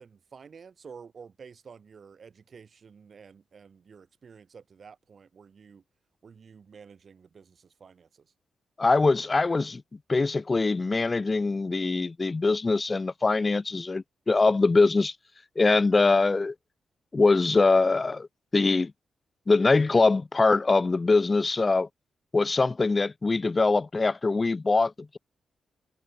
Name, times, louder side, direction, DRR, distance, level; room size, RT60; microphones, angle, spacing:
voice 1, 0.0-5.8 6.2-8.3, right 6 dB, 50° right, 3.6 m, -50 dB
voice 2, 8.8-9.8 10.1-15.1 15.6-16.5 17.1-18.3 18.5-18.9 19.5-21.9 22.3-25.2, left 3 dB, 30° left, 1.0 m, -23 dB
cardioid pair, 80°, 0 cm